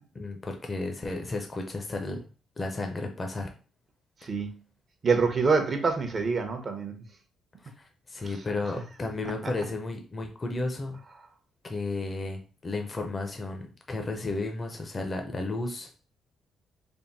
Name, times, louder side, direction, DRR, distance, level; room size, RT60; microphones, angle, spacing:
voice 1, 0.1-2.3 2.6-3.5 7.6-11.0 11.6-15.9, left 2 dB, 30° left, 3 dB, 0.7 m, -33 dB
voice 2, 5.0-6.9, right 4 dB, 40° right, 6 dB, 0.8 m, -25 dB
3.5 x 2.1 x 4.1 m, 0.36 s
cardioid pair, 90°, 0 cm